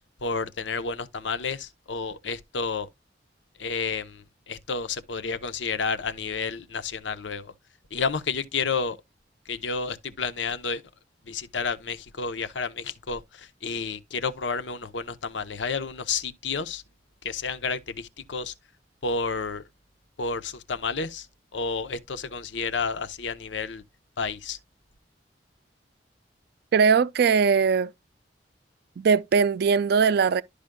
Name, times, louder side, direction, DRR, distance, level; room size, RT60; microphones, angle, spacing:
voice 1, 0.2-2.9 3.6-7.5 7.9-9.0 9.5-10.8 11.3-16.8 17.2-18.5 19.0-19.6 20.2-21.3 21.5-23.8 24.2-24.6, left 5 dB, 85° left, 0.8 m, -30 dB
voice 2, 26.7-27.9 29.0-30.4, right 6 dB, 60° right, 0.4 m, -20 dB
12.0 x 5.0 x 2.2 m
head